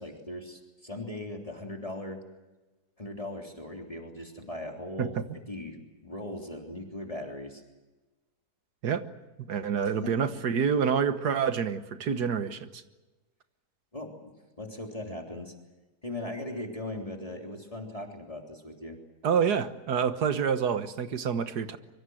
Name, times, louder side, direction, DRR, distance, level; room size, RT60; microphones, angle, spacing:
voice 1, 0.0-2.2 3.0-5.1 5.5-7.6 9.8-10.1 13.9-15.5 16.0-19.0, left 1 dB, 20° left, 1 dB, 3.4 m, -39 dB
voice 2, 9.4-12.8 19.2-21.8, right 7 dB, 80° right, 10 dB, 1.8 m, -27 dB
24.5 x 24.0 x 7.8 m, 1.1 s
omnidirectional pair, 1.7 m